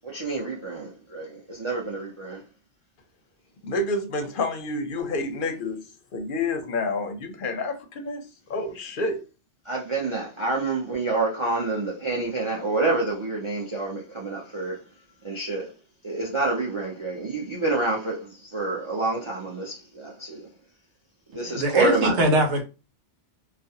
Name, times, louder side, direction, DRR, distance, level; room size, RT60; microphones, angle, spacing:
voice 1, 0.0-2.5 9.6-14.8 15.2-15.7 16.0-20.5 21.3-22.2, right 2 dB, 45° right, 0.4 m, -28 dB
voice 2, 3.6-5.8 6.1-8.2 8.5-9.2, left 2 dB, 60° left, 0.6 m, -29 dB
voice 3, 21.5-22.6, right 2 dB, 70° right, 1.0 m, -21 dB
2.4 x 2.1 x 2.7 m
omnidirectional pair, 1.2 m